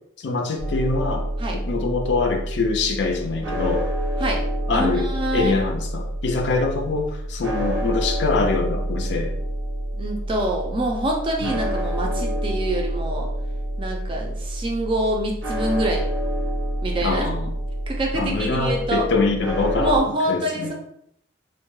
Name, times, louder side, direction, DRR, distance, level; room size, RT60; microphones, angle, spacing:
voice 1, 0.2-1.3 1.5-3.8 4.7-5.1 5.3-9.3 11.4-11.6 17.0-17.5 18.1-20.7, left 3 dB, 65° left, 4 dB, 0.4 m, -24 dB
sound 1, 0.6-20.0, right 1 dB, 80° right, 0.6 m, -28 dB
voice 2, 4.7-5.6 10.0-13.3 13.8-16.1 16.8-17.3 17.9-19.0 19.8-20.7, right 1 dB, 25° right, 0 dB, 0.4 m, -25 dB
2.2 x 2.1 x 3.0 m, 0.72 s
head